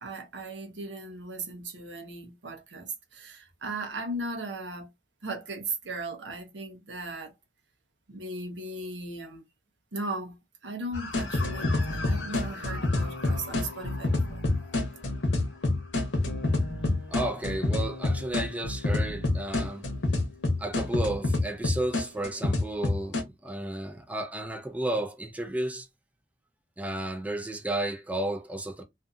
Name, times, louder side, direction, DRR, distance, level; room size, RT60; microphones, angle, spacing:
voice 1, 0.0-4.9 5.2-7.3 8.1-9.4 9.9-10.4 10.6-14.4, right 2 dB, 90° right, 0.8 m, -37 dB
sound 1, 10.9-23.2, left 2 dB, 85° left, 0.8 m, -28 dB
voice 2, 17.1-19.9 20.6-25.9 26.8-28.8, right 1 dB, 10° right, 0.4 m, -32 dB
2.5 x 2.5 x 2.4 m
head